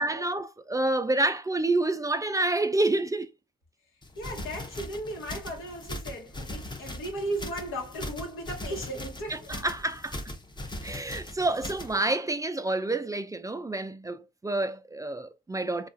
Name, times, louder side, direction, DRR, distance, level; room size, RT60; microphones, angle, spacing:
voice 1, 0.0-3.3 9.3-10.2 10.8-15.9, right 2 dB, 15° right, 0.4 m, -28 dB
sound 1, 4.0-12.0, left 1 dB, 20° left, 0.7 m, -40 dB
voice 2, 4.2-9.5, right 1 dB, 85° left, 1.1 m, -36 dB
2.9 x 2.4 x 2.6 m
cardioid pair, 65°, 21 cm